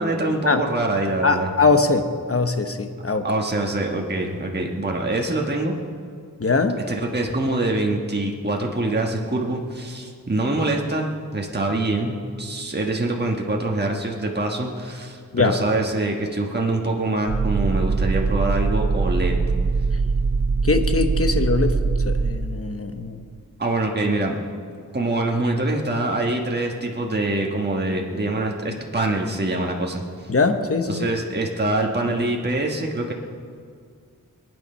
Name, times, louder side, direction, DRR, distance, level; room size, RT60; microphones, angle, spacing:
voice 1, 0.0-1.5 3.2-5.7 6.9-19.3 23.6-24.3 24.9-30.0 30.9-33.1, right 2 dB, 30° right, 0 dB, 1.4 m, -24 dB
voice 2, 1.2-3.3 6.4-6.8 15.3-15.6 20.6-23.2 30.3-31.1, left 4 dB, 40° left, 7 dB, 1.1 m, -21 dB
sound 1, 17.3-22.3, right 4 dB, 85° right, 1.3 m, -22 dB
22.5 x 9.3 x 5.6 m, 2.2 s
wide cardioid pair, 70°, 34 cm